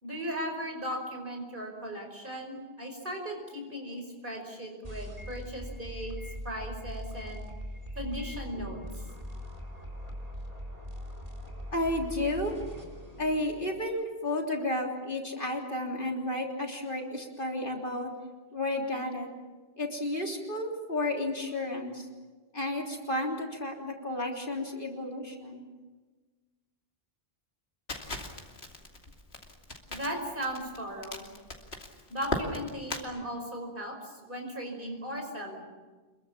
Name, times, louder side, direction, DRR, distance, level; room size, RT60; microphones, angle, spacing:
voice 1, 0.0-6.2 6.4-7.4 8.0-9.0 29.9-31.3 32.1-35.6, equal, 55° right, 3 dB, 5.6 m, -37 dB
sound 1, 4.8-13.8, equal, 35° right, 4.0 m, -41 dB
voice 2, 11.7-12.5 13.2-18.1 18.5-19.3 19.8-22.1 22.5-25.6, left 1 dB, 55° left, 1 dB, 3.6 m, -32 dB
Crackle, 27.9-33.0, left 2 dB, 85° left, 3.0 m, -38 dB
27.5 x 22.5 x 7.3 m, 1.3 s
omnidirectional pair, 1.0 m